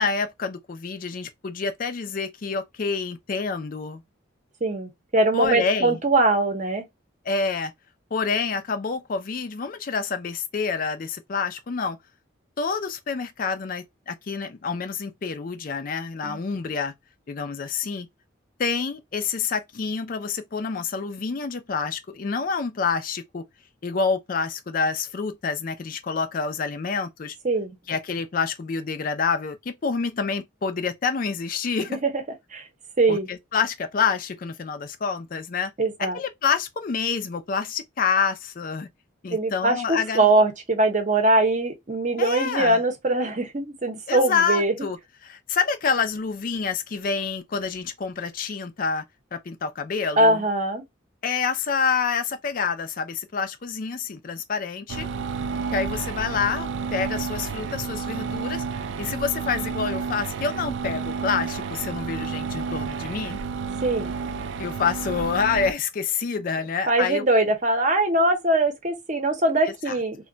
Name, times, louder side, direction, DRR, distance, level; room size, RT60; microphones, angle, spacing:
voice 1, 0.0-4.0 5.3-6.0 7.3-7.7 8.1-12.0 12.6-16.9 17.3-18.1 18.6-23.4 23.8-27.4 27.9-32.0 33.1-35.7 36.0-38.9 39.2-40.3 42.2-42.8 44.1-49.0 49.3-50.4 51.2-55.1 55.7-58.6 59.0-63.4 64.6-67.2 69.7-70.0, left 5 dB, 45° left, 0.4 m, -27 dB
voice 2, 4.6-6.8 16.2-16.4 27.4-27.7 32.0-32.1 32.5-32.6 33.0-33.3 35.8-36.2 39.3-44.7 50.2-50.8 63.8-64.1 66.9-70.2, right 2 dB, 40° right, 0.7 m, -22 dB
sound 1, 54.9-65.7, right 5 dB, 65° right, 0.3 m, -31 dB
2.2 x 2.1 x 3.8 m
head